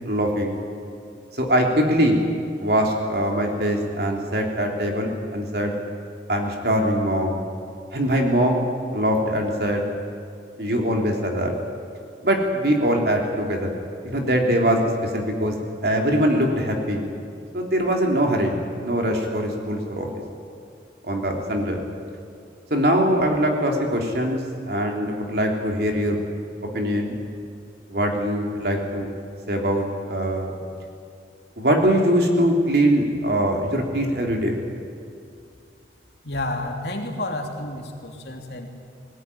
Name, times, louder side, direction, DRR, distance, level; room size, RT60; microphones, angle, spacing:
voice 1, 0.0-0.6 1.3-2.2 2.6-5.7 6.3-7.4 7.9-8.6 8.9-9.9 10.6-11.5 12.2-13.7 14.0-15.5 15.8-17.0 17.5-20.1 21.0-21.8 22.7-24.4 24.7-26.2 26.7-27.2 27.9-29.1 29.5-30.5 31.6-34.6, equal, 60° right, 1 dB, 3.3 m, -22 dB
voice 2, 36.2-38.7, left 1 dB, 65° left, 2 dB, 3.0 m, -30 dB
20.0 x 19.0 x 9.9 m, 2.4 s
head